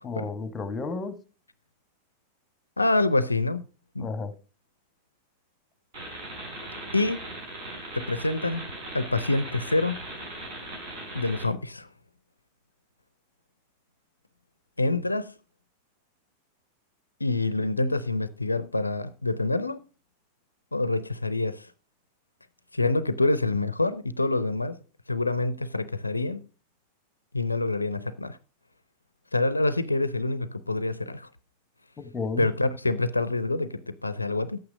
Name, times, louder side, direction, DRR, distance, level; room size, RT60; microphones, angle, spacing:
voice 1, 0.0-1.2 4.0-4.3 32.0-32.5, left 4 dB, 20° left, 1.4 m, -32 dB
voice 2, 2.8-3.7 3.9-4.1 6.9-7.2 7.9-8.7 8.9-10.1 11.1-11.9 14.8-15.3 17.2-19.8 20.7-21.7 22.7-24.8 25.1-26.4 27.3-28.4 29.3-31.3 32.4-34.6, left 2 dB, 80° left, 0.5 m, -26 dB
sound 1, 5.9-11.5, right 2 dB, 50° right, 6.1 m, -39 dB
10.5 x 8.7 x 5.0 m
figure-of-eight pair, 90°, 0 cm